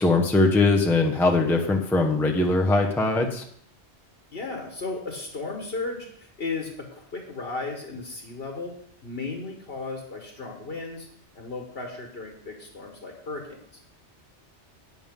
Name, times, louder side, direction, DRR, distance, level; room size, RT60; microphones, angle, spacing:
voice 1, 0.0-3.4, left 2 dB, ahead, 1 dB, 0.8 m, -21 dB
voice 2, 4.3-8.8 9.0-11.1 11.3-13.6, left 3 dB, 60° left, 1 dB, 1.7 m, -35 dB
11.0 x 9.0 x 3.7 m, 0.67 s
omnidirectional pair, 1.1 m